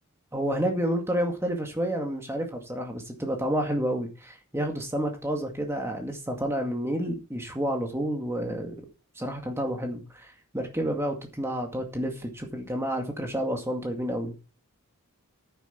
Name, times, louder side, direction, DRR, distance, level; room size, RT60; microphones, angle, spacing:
voice 1, 0.3-8.7 9.2-14.5, equal, 10° right, 2 dB, 2.1 m, -30 dB
9.6 x 9.0 x 4.5 m, 0.33 s
head